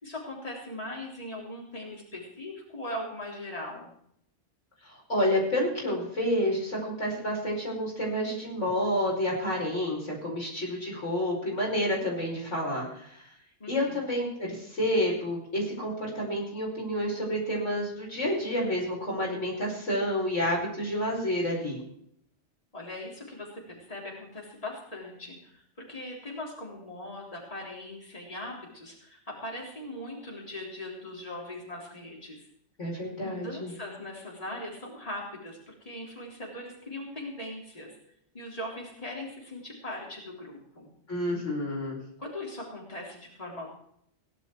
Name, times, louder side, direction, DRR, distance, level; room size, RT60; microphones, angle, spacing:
voice 1, 0.0-3.9 13.6-14.1 22.7-32.5 33.2-38.0 38.3-40.9 42.2-43.7, left 1 dB, 30° left, -2 dB, 3.7 m, -40 dB
voice 2, 4.8-13.2 13.7-21.8 32.8-33.7 41.1-42.0, equal, 80° left, -2 dB, 5.6 m, -29 dB
17.5 x 11.0 x 4.6 m, 0.71 s
omnidirectional pair, 1.2 m